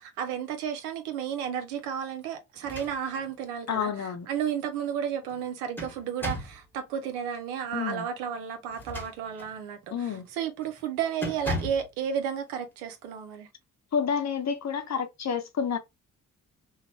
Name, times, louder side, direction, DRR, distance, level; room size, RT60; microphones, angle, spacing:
voice 1, 0.0-13.5, right 8 dB, 85° right, 0.6 m, -33 dB
sound 1, 2.6-3.3 3.7-3.8 5.3-6.6 8.7-9.6 10.1-10.3 10.6-10.8 11.2-11.9, equal, 5° left, 1.1 m, -36 dB
voice 2, 3.7-4.3 7.7-8.1 9.9-10.3 13.9-15.8, left 7 dB, 40° left, 0.7 m, -29 dB
3.1 x 2.1 x 2.8 m
hypercardioid pair, 40°, 44 cm